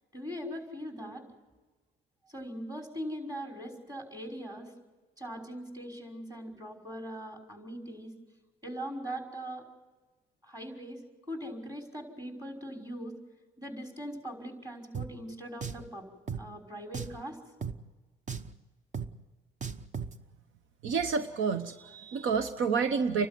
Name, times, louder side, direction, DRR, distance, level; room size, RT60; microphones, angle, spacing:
voice 1, 0.1-1.2 2.3-4.7 5.2-8.1 8.6-9.7 10.4-13.1 13.6-16.1 16.4-17.4, equal, 20° right, 2 dB, 5.6 m, -41 dB
Drum, 14.9-15.1 15.6-15.9 16.3-16.4 16.9-17.2 17.6-17.8 18.3-18.5 18.9-19.1 19.6-20.1, right 6 dB, 40° right, 1.0 m, -36 dB
voice 2, 20.8-23.3, right 5 dB, 75° right, 9 dB, 1.0 m, -29 dB
30.0 x 12.5 x 9.3 m, 1.3 s
cardioid pair, 90°, 20 cm